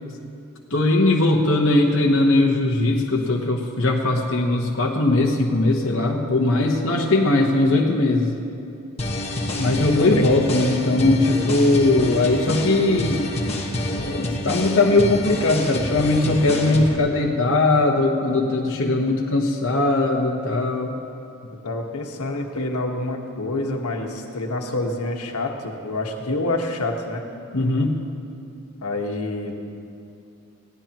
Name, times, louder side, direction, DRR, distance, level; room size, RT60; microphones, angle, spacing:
voice 1, 0.7-8.3 9.6-13.2 13.9-21.0 27.5-28.0, left 2 dB, 60° left, -1 dB, 1.1 m, -20 dB
sound 1, 9.0-17.0, left 1 dB, 30° left, 1.4 m, -27 dB
voice 2, 21.6-27.2 28.8-29.5, left 2 dB, 85° left, 2 dB, 1.4 m, -27 dB
21.0 x 16.5 x 3.0 m, 2.6 s
head